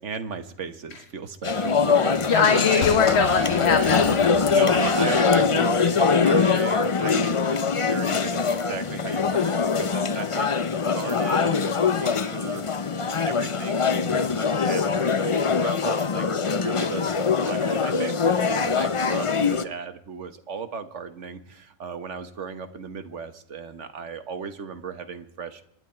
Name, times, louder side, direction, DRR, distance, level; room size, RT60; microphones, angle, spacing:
voice 1, 0.0-2.8 4.5-7.6 7.9-10.5 10.9-12.6 13.0-16.2 16.5-17.0 17.4-19.3 19.6-21.4 21.8-25.6, right 5 dB, 60° right, 9 dB, 1.6 m, -35 dB
sound 1, 1.4-19.6, left 5 dB, 35° left, 0.5 m, -23 dB
voice 2, 1.9-4.5, left 6 dB, 55° left, 7 dB, 1.4 m, -22 dB
sound 2, 2.8-6.3 6.5-6.6, left 8 dB, 75° left, 1.4 m, -36 dB
26.5 x 10.5 x 4.5 m, 0.73 s
omnidirectional pair, 1.4 m